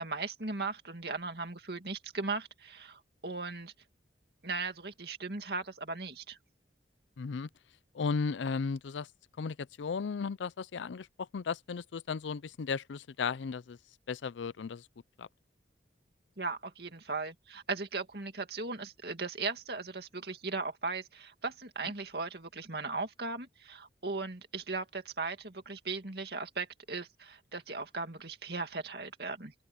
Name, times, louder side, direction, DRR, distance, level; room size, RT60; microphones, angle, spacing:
voice 1, 0.0-3.7 4.4-6.4 16.4-29.5, right 3 dB, 60° right, 2.3 m, -38 dB
voice 2, 7.2-7.5 7.9-9.1 9.4-11.1 11.3-13.8 14.1-14.8 15.2-15.3, left 5 dB, 90° left, 0.5 m, -35 dB
open air
head